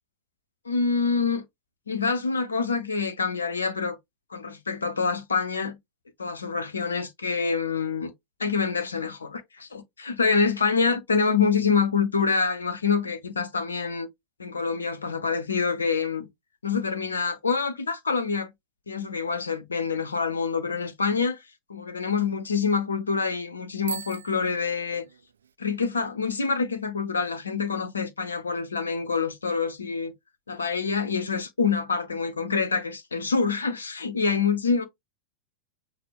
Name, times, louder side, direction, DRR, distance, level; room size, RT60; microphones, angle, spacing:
voice 1, 0.6-1.4 1.9-4.0 4.3-5.8 6.2-8.1 8.4-14.1 14.4-16.3 16.6-18.5 18.9-21.4 21.7-25.0 25.6-30.1 30.5-34.8, left 5 dB, 75° left, 0.8 m, -26 dB
Bicycle bell, 23.8-25.5, right 6 dB, 70° right, 0.4 m, -39 dB
5.8 x 2.2 x 3.4 m
figure-of-eight pair, 90°, 0 cm